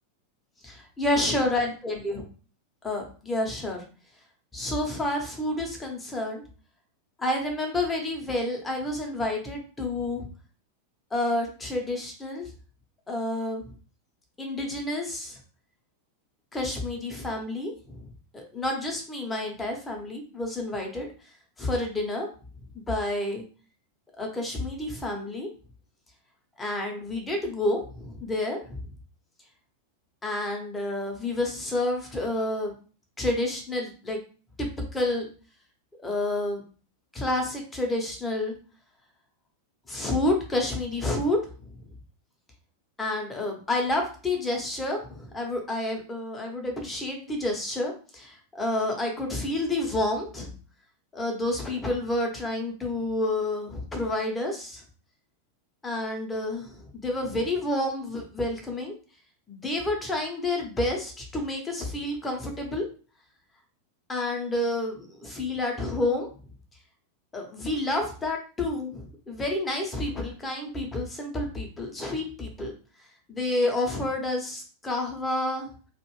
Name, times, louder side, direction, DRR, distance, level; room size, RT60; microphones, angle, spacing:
voice 1, 0.6-2.2 2.8-3.8 4.5-6.4 7.2-10.2 11.1-12.5 13.1-13.7 14.4-15.4 16.5-18.1 18.3-21.1 21.6-22.3 22.7-23.4 24.2-25.5 26.6-28.8 30.2-32.7 33.2-34.2 34.6-35.3 36.0-36.6 37.1-38.5 39.9-41.4 43.0-50.5 51.1-54.8 55.8-58.9 59.5-62.8 64.1-66.3 67.3-72.7 73.3-75.7, left 1 dB, 15° left, 1 dB, 0.9 m, -29 dB
2.6 x 2.4 x 3.1 m, 0.38 s
figure-of-eight pair, 90°, 0 cm